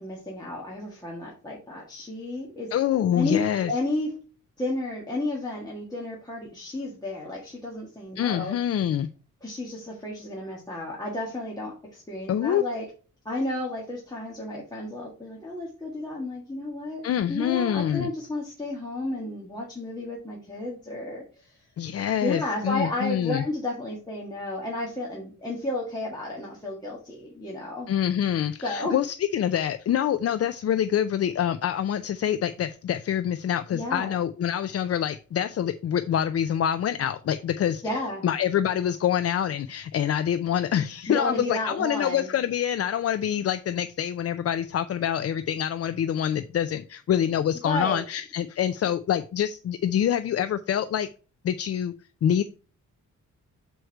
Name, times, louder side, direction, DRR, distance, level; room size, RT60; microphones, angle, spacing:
voice 1, 0.0-2.7 3.1-3.4 3.7-4.2 4.6-8.5 9.4-12.8 13.2-21.6 22.2-27.9 28.6-28.9 33.7-34.2 37.8-38.2 41.1-42.3 47.6-48.0, left 2 dB, 15° left, -4 dB, 1.5 m, -32 dB
voice 2, 2.7-3.7 8.2-9.1 12.3-12.6 17.0-18.1 21.8-23.4 27.9-38.0 38.2-51.1 51.4-51.9 52.2-52.4, left 10 dB, 50° left, 11 dB, 0.4 m, -26 dB
6.4 x 4.7 x 4.5 m, 0.37 s
wide cardioid pair, 150°, 31 cm